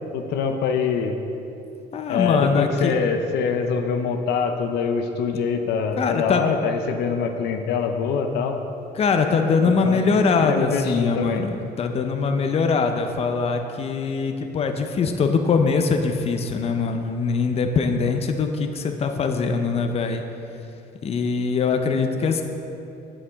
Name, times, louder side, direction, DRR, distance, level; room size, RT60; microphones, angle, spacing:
voice 1, 0.1-1.2 2.1-8.6 9.9-10.0 10.4-11.4, left 6 dB, 80° left, 5 dB, 0.6 m, -24 dB
voice 2, 1.9-2.9 6.0-6.4 9.0-11.5 11.8-20.2 21.0-22.4, left 5 dB, 35° left, 6 dB, 0.6 m, -22 dB
8.3 x 7.3 x 3.5 m, 2.8 s
cardioid pair, 110°, 17 cm